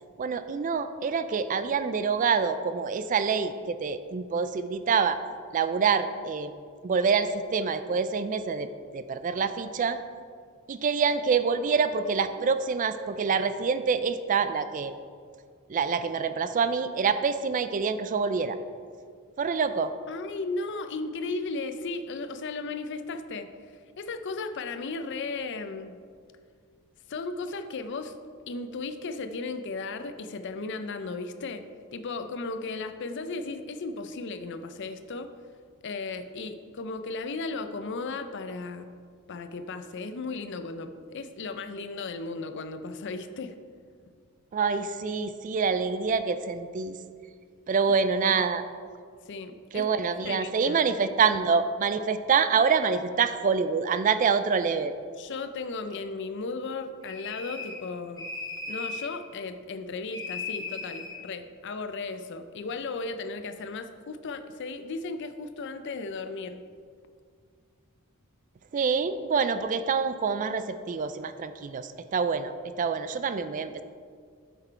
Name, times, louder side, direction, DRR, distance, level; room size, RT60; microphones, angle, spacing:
voice 1, 0.2-5.2 5.5-6.5 6.8-8.7 8.9-10.0 10.7-14.9 15.7-18.6 19.4-19.9 44.5-47.0 47.7-48.6 49.7-54.9 68.7-73.8, right 5 dB, 35° right, 11 dB, 0.3 m, -26 dB
voice 2, 20.1-23.5 24.0-26.0 27.1-28.2 28.5-31.6 31.9-35.3 35.8-38.9 39.3-43.6 48.2-48.4 49.3-49.9 50.2-50.9 55.2-58.3 58.7-66.6, left 3 dB, 55° left, 9 dB, 0.5 m, -35 dB
sound 1, 57.0-57.9 58.2-59.1 60.1-61.2, left 4 dB, 20° left, 2.0 m, -37 dB
8.0 x 6.0 x 4.5 m, 2.1 s
head